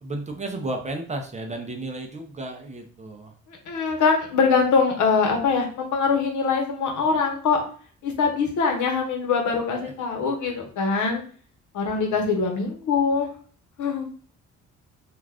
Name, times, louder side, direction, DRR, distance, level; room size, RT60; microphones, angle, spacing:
voice 1, 0.0-3.3 9.8-9.9 11.9-12.3, right 2 dB, 25° right, 3 dB, 0.6 m, -33 dB
voice 2, 3.7-7.6 8.0-11.2 11.7-13.3 13.8-14.1, left 5 dB, 75° left, 2 dB, 0.9 m, -23 dB
2.4 x 2.4 x 3.3 m, 0.44 s
cardioid pair, 90°, 30 cm